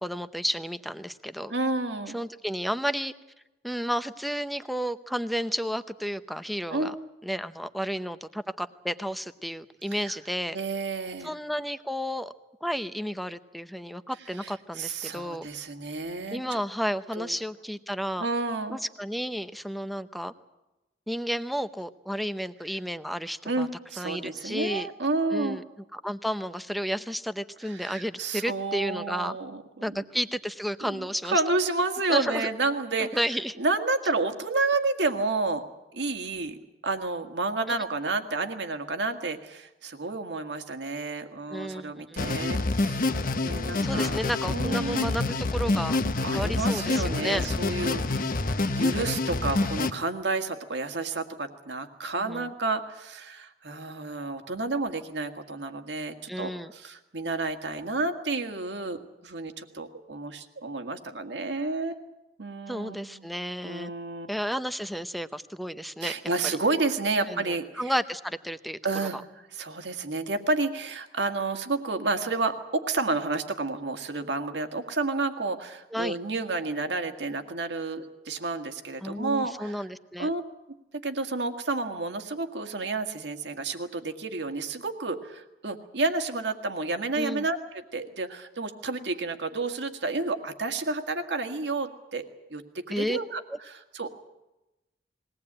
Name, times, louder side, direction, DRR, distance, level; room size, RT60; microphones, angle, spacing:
voice 1, 0.0-1.5 2.1-3.1 3.6-6.9 7.2-10.6 11.2-12.3 12.6-15.5 16.3-18.3 18.7-20.3 21.1-23.7 24.0-24.9 25.3-25.6 25.9-29.4 29.8-31.4 32.1-32.5 33.1-33.6 41.5-42.2 43.8-46.0 46.3-47.5 52.2-52.5 56.3-56.7 62.7-63.9 64.3-66.1 67.3-68.8 69.1-69.2 75.9-76.2 79.0-80.3 87.2-87.5 92.9-93.2, equal, ahead, 11 dB, 0.7 m, -32 dB
voice 2, 1.5-2.2 6.7-6.9 10.0-10.1 10.5-11.3 14.4-16.6 17.2-17.3 18.2-18.8 23.5-25.6 27.6-30.0 30.8-33.1 33.6-35.6 35.9-36.6 36.8-44.2 44.5-45.2 46.2-48.4 48.7-62.1 62.4-63.3 63.6-64.4 66.0-67.8 68.8-69.2 69.5-79.9 80.2-80.4 81.0-92.3 92.5-93.4 93.7-94.1, right 3 dB, 80° right, 6 dB, 1.9 m, -30 dB
sound 1, 42.2-49.9, left 2 dB, 55° left, 0.9 m, -27 dB
21.0 x 18.0 x 8.7 m, 0.99 s
head